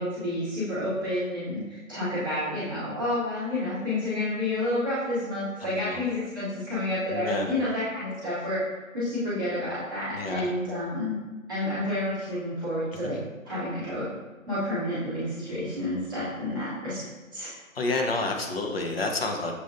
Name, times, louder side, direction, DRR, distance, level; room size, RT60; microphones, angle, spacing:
voice 1, 0.0-11.2 11.5-13.2 13.4-14.1 14.5-17.0 17.3-17.5, left 1 dB, 15° right, -12 dB, 0.8 m, -30 dB
voice 2, 5.6-6.0 7.1-7.5 10.1-10.5 13.0-13.2 17.7-19.5, left 3 dB, 45° left, 2 dB, 0.7 m, -30 dB
6.6 x 2.4 x 2.5 m, 1.3 s
figure-of-eight pair, 150°, 42 cm